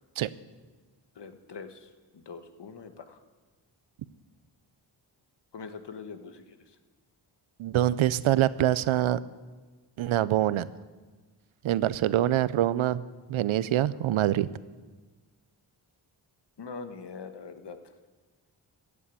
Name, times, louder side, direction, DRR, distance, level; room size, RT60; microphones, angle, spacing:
voice 1, 1.2-3.2 5.5-6.6 16.6-17.8, left 5 dB, 55° left, 8 dB, 1.4 m, -43 dB
voice 2, 7.6-9.2 10.0-10.7 11.6-13.0 13.3-14.5, right 13 dB, 85° right, 17 dB, 0.6 m, -25 dB
14.5 x 8.5 x 8.4 m, 1.4 s
cardioid pair, 70°, 48 cm